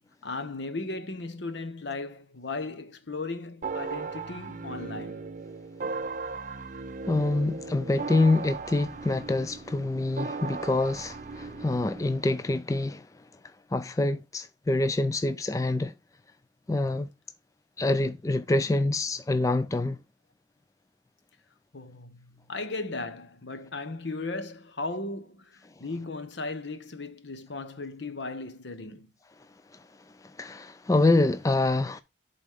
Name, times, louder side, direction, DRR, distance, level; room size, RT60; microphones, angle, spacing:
voice 1, 0.2-5.2 18.7-18.8 21.7-29.1, left 3 dB, 70° left, 1.0 m, -36 dB
sound 1, 3.6-12.3, right 4 dB, 40° right, 0.5 m, -37 dB
voice 2, 7.1-13.1 13.7-15.9 16.7-17.1 17.8-20.0 30.4-32.0, left 2 dB, 15° left, 0.3 m, -26 dB
11.0 x 4.1 x 3.6 m
head